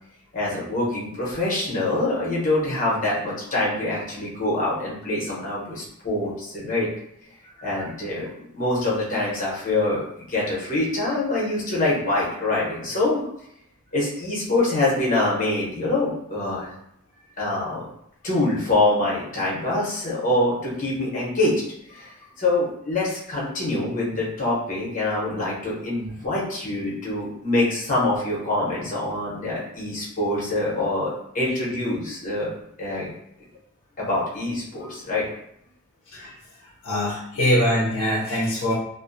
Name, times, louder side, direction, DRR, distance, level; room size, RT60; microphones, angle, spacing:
voice 1, 0.3-6.9 7.6-8.3 8.5-13.3 13.9-16.7 17.4-17.9 18.2-21.6 21.9-22.1 22.4-32.5 32.8-33.1 34.0-35.3, left 2 dB, 35° left, -5 dB, 0.8 m, -25 dB
voice 2, 36.8-38.7, equal, 65° left, -5 dB, 0.6 m, -23 dB
2.4 x 2.2 x 2.5 m, 0.74 s
head